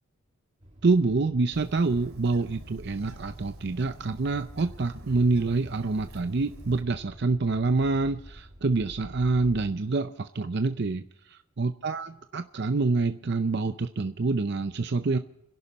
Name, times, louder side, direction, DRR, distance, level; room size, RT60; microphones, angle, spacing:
sound 1, 0.6-9.7, equal, 30° right, 2.1 m, -49 dB
voice 1, 0.8-15.2, right 3 dB, 50° right, 9 dB, 0.5 m, -26 dB
Bird, 1.5-6.8, right 1 dB, 80° right, 2.4 m, -46 dB
30.0 x 11.0 x 4.2 m, 0.85 s
head